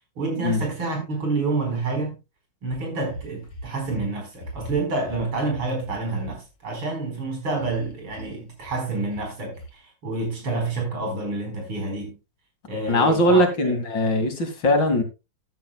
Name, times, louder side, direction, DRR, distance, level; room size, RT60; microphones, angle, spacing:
voice 1, 0.2-2.2 2.6-12.2 12.7-13.7, right 3 dB, 85° right, 5.3 m, -28 dB
sound 1, 2.7-4.1 4.3-6.3 7.6-8.3 8.6-8.8 9.1-9.3 9.6-9.7, equal, 80° left, 3.2 m, -39 dB
voice 2, 12.9-15.0, left 1 dB, 60° left, 2.9 m, -20 dB
13.5 x 10.0 x 2.3 m
omnidirectional pair, 2.2 m